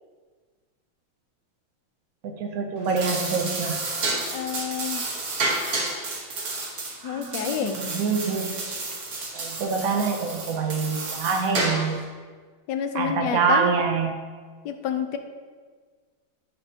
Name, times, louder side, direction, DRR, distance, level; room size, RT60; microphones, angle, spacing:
voice 1, 2.2-3.8 7.0-8.5 9.3-12.0 12.9-14.2, right 5 dB, 80° right, 3 dB, 0.7 m, -26 dB
sound 1, 2.8-12.0, right 2 dB, 55° right, 1.5 m, -31 dB
voice 2, 4.3-5.0 7.0-7.8 12.7-13.7 14.6-15.2, left 8 dB, 75° left, 7 dB, 1.1 m, -28 dB
10.5 x 5.3 x 2.8 m, 1.5 s
omnidirectional pair, 2.2 m